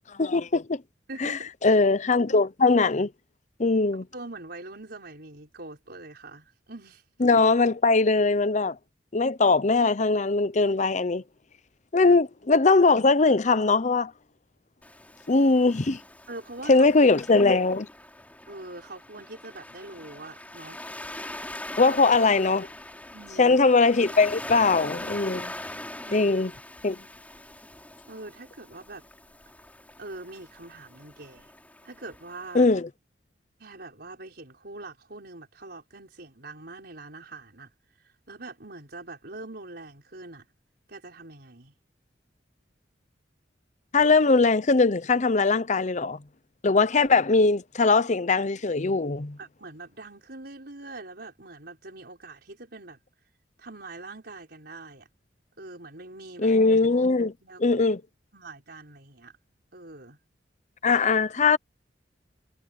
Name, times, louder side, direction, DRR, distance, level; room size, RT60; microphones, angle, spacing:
voice 1, 0.1-0.8 1.2-3.1 3.6-4.1 7.2-8.8 9.1-11.2 11.9-14.1 15.3-16.0 16.7-17.9 21.8-22.7 23.4-25.5 26.1-26.5 26.8-27.0 32.5-32.9 43.9-46.2 46.6-49.4 56.4-57.3 57.6-58.0 60.8-61.6, left 3 dB, 40° left, 0.7 m, -21 dB
voice 2, 1.1-1.5 4.1-7.0 12.1-12.2 16.3-16.9 18.5-20.8 23.1-23.6 26.0-26.5 28.0-29.0 30.0-31.5 31.8-32.7 33.6-37.7 38.0-40.5 40.9-41.7 49.4-53.0 53.6-55.1 55.6-56.5 57.4-57.6 58.3-59.3 59.7-60.2, right 2 dB, 60° right, 5.4 m, -43 dB
Waves surf, 14.8-32.6, left 1 dB, 10° left, 5.7 m, -42 dB
head